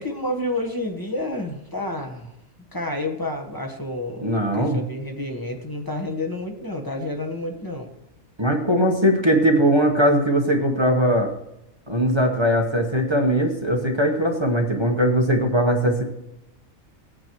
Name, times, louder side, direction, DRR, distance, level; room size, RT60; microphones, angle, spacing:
voice 1, 0.0-2.3 2.7-7.9, left 1 dB, 15° left, 2 dB, 1.1 m, -29 dB
voice 2, 4.2-4.8 8.4-11.3 11.9-16.0, equal, 20° right, 0 dB, 1.0 m, -20 dB
17.0 x 8.8 x 3.0 m, 0.84 s
omnidirectional pair, 1.4 m